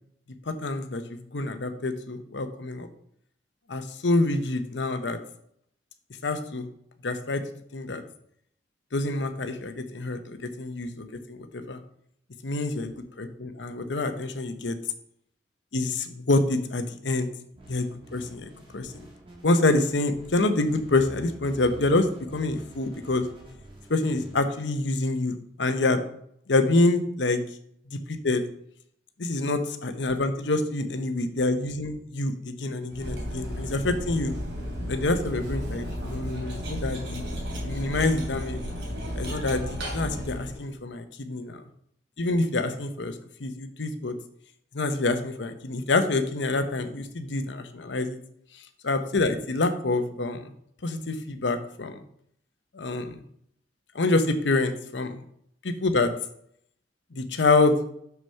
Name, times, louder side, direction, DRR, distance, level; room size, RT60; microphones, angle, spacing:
voice 1, 0.5-2.9 3.7-5.2 6.2-6.7 7.0-7.4 7.7-8.0 8.9-11.8 12.4-12.9 13.2-14.8 15.7-17.3 17.7-17.9 18.1-18.9 19.4-23.3 23.9-26.0 26.5-27.4 27.9-28.4 29.2-34.3 34.9-37.2 37.6-38.6 39.2-41.6 42.2-44.2 44.7-48.2 48.8-50.5 50.8-52.0 52.7-53.2 53.9-55.2 55.6-56.1 57.1-57.8, left 2 dB, 85° left, 9 dB, 0.9 m, -26 dB
sound 1, 17.5-24.4, equal, 30° right, 1.8 m, -48 dB
Cutlery silverware, 32.9-40.6, equal, 80° right, 3.1 m, -33 dB
6.3 x 6.0 x 5.6 m, 0.69 s
head